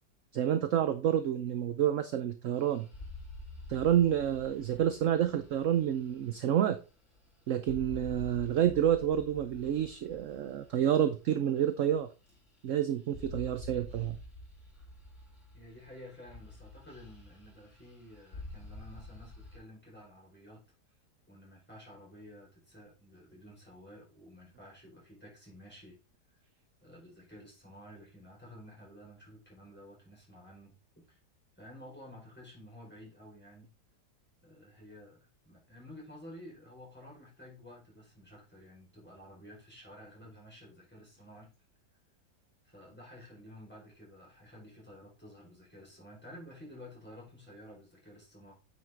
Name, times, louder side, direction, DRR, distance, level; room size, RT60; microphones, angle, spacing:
voice 1, 0.3-2.9 3.7-6.8 7.5-12.1 12.6-14.2, right 10 dB, 60° right, 10 dB, 0.9 m, -29 dB
sound 1, 2.5-7.3 7.6-11.9 12.2-12.7 13.0-19.6, left 1 dB, 45° left, 3.3 m, -48 dB
voice 2, 15.5-20.6 21.3-26.0 26.8-30.7 31.1-31.2 31.6-33.7 34.4-35.2 35.4-41.5 42.6-48.5, left 1 dB, 5° left, -4 dB, 4.6 m, -52 dB
9.0 x 5.9 x 3.7 m, 0.31 s
omnidirectional pair, 1.8 m